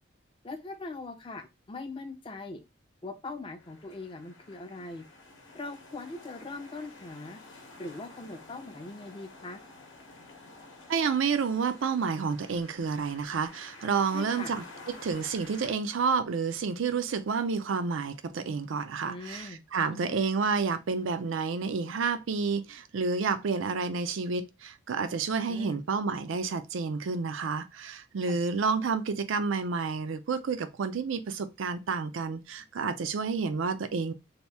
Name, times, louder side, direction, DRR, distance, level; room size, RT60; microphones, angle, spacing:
voice 1, 0.4-2.6 3.0-5.0 5.5-7.4 7.8-9.6 14.1-14.5 19.1-19.6 19.9-20.2 25.5-25.8 28.2-28.4, left 3 dB, 25° left, 0.4 m, -41 dB
sound 1, 3.6-15.7, left 2 dB, 60° left, 0.8 m, -51 dB
voice 2, 10.9-34.1, right 5 dB, 70° right, 0.4 m, -30 dB
2.8 x 2.6 x 3.3 m
head